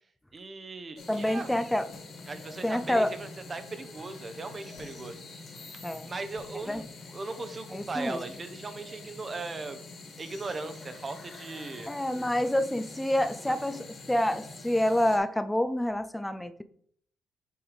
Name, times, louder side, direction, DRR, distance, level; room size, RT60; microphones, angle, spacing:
voice 1, 0.3-1.5 2.3-5.2 6.1-9.8 10.2-11.9 13.5-13.8, right 3 dB, 35° right, 9 dB, 1.0 m, -38 dB
sound 1, 1.0-15.2, left 3 dB, 50° left, 2.2 m, -46 dB
voice 2, 1.1-1.8 2.6-3.1 5.8-6.1 6.6-6.8 7.7-8.2 11.9-16.6, left 1 dB, 5° left, 11 dB, 0.6 m, -28 dB
sound 2, 1.9-2.4 2.8-2.9 4.7-5.2 5.9-6.0 6.3-6.8 7.1-7.2, left 3 dB, 80° left, 2.3 m, -54 dB
7.9 x 3.5 x 4.9 m, 0.63 s
cardioid pair, 90°, 0 cm